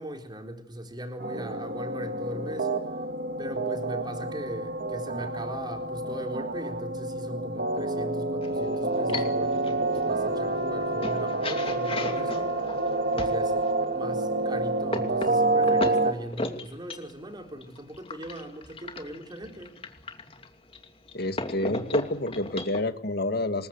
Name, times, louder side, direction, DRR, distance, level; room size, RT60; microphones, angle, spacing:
voice 1, 0.0-2.7 3.4-12.5 13.1-13.5 13.9-19.7, right 1 dB, 25° right, 4 dB, 4.2 m, -39 dB
sound 1, 1.2-16.1, right 2 dB, 55° right, 2.1 m, -28 dB
sound 2, 8.4-13.7 14.3-22.8, left 2 dB, 30° left, 2.8 m, -37 dB
voice 2, 21.1-23.7, left 2 dB, 60° left, 10 dB, 1.9 m, -29 dB
26.5 x 22.0 x 8.1 m, 0.71 s
head